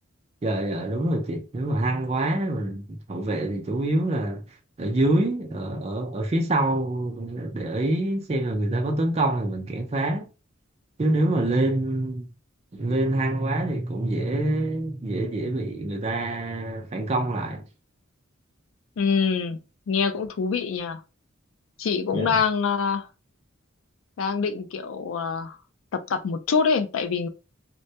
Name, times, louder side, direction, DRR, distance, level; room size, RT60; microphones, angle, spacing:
voice 1, 0.4-4.4 4.8-10.3 11.0-12.3 12.7-17.6 22.1-22.3, right 1 dB, 30° right, 0.4 m, -26 dB
voice 2, 19.0-19.6 19.9-21.0 21.8-23.1 24.2-25.6 25.9-27.3, left 5 dB, 70° left, 0.3 m, -25 dB
2.1 x 2.1 x 2.7 m
head